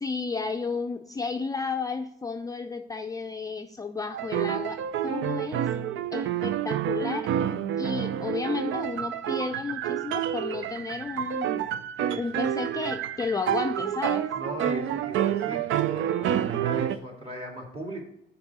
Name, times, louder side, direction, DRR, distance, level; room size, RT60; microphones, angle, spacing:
voice 1, 0.0-5.6 6.1-7.3 7.8-11.7 12.2-14.3, left 4 dB, 15° left, 5 dB, 0.4 m, -32 dB
sound 1, 4.1-17.0, right 10 dB, 75° right, 0.5 m, -28 dB
voice 2, 14.3-18.0, right 1 dB, 30° right, -2 dB, 2.7 m, -38 dB
6.3 x 4.8 x 6.1 m, 0.76 s
cardioid pair, 90°, 20 cm